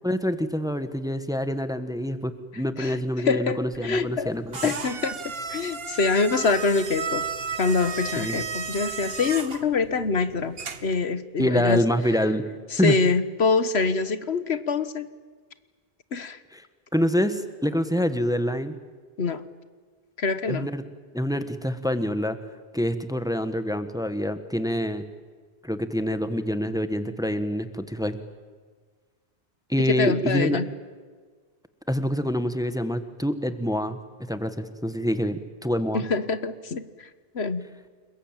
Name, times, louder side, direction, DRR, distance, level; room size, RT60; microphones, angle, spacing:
voice 1, 0.0-4.7 8.2-8.4 11.4-12.4 12.8-13.0 16.5-16.6 16.9-18.8 20.5-20.8 21.1-22.4 22.7-25.0 25.6-28.2 29.7-30.6 31.9-34.0 34.3-36.0, equal, 5° right, 10 dB, 1.4 m, -26 dB
voice 2, 3.2-4.3 4.6-5.2 5.5-7.3 7.6-10.5 10.8-11.8 12.7-15.1 16.1-16.4 19.2-19.4 20.2-20.7 29.9-30.7 35.9-37.1 37.3-37.7, left 4 dB, 80° left, 12 dB, 1.5 m, -25 dB
sound 1, 3.7-11.0, right 5 dB, 65° right, 1.5 m, -34 dB
30.0 x 21.5 x 9.0 m, 1.5 s
omnidirectional pair, 1.1 m